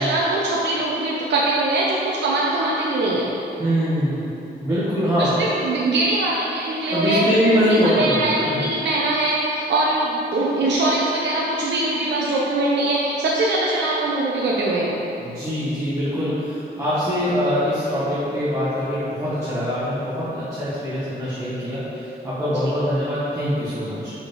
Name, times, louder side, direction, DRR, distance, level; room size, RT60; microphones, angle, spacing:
voice 1, 0.0-3.3 5.2-7.2 7.5-15.0, right 2 dB, 75° right, -4 dB, 0.7 m, -22 dB
voice 2, 3.6-4.2 4.6-5.4 6.9-8.6 15.2-24.1, equal, 15° right, -12 dB, 1.4 m, -23 dB
5.6 x 5.1 x 5.3 m, 2.9 s
wide cardioid pair, 155°, 18 cm